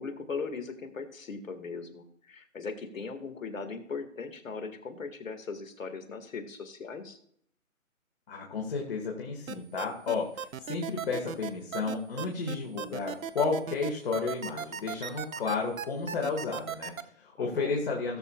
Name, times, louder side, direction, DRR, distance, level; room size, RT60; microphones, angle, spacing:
voice 1, 0.0-7.2 17.4-17.8, left 4 dB, 65° left, 8 dB, 2.0 m, -39 dB
voice 2, 8.3-18.2, left 4 dB, 40° left, -1 dB, 1.9 m, -32 dB
sound 1, 9.5-17.0, right 8 dB, 70° right, 0.9 m, -36 dB
17.5 x 7.1 x 2.4 m, 0.68 s
hypercardioid pair, 165°, 42 cm